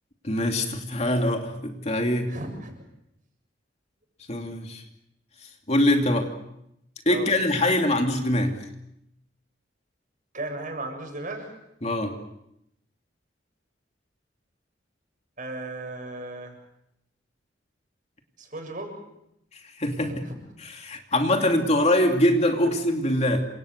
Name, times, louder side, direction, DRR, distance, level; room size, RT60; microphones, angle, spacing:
voice 1, 0.2-2.3 4.3-4.8 5.7-6.3 7.1-8.6 11.8-12.2 19.8-20.2 20.6-23.4, left 1 dB, 35° left, 3 dB, 2.9 m, -23 dB
voice 2, 2.3-2.7 7.1-7.3 10.3-11.5 15.4-16.6 18.4-18.9 20.0-20.4 21.4-21.5, right 2 dB, 45° right, 4 dB, 7.2 m, -35 dB
29.0 x 26.0 x 6.7 m, 0.80 s
head